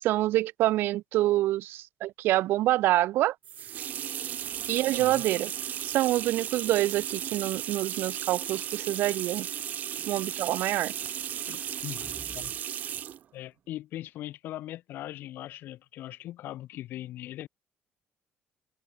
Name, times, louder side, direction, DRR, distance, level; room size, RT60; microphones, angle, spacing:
voice 1, 0.0-3.4 4.7-5.5 5.8-9.5 10.1-10.9, right 15 dB, 75° right, 0.5 m, -26 dB
sound 1, 3.4-13.2, right 10 dB, 45° right, 3.9 m, -35 dB
voice 2, 11.5-12.1 12.3-12.8 13.3-17.5, left 14 dB, 70° left, 2.9 m, -40 dB
sound 2, 11.8-12.6 13.0-13.1, equal, ahead, 5.6 m, -49 dB
cardioid pair, 175°, 4 cm